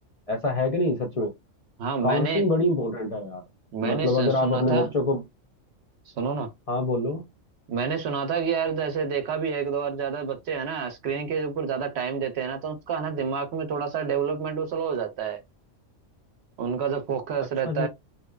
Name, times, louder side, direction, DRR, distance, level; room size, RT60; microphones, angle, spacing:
voice 1, 0.3-1.3 2.0-3.4 3.8-5.2 6.7-7.2 17.6-17.9, left 2 dB, 50° left, 0.4 m, -25 dB
voice 2, 1.8-2.5 3.7-4.9 6.2-6.5 7.7-15.4 16.6-17.9, right 6 dB, 65° right, 0.8 m, -28 dB
2.7 x 2.1 x 2.2 m
omnidirectional pair, 1.3 m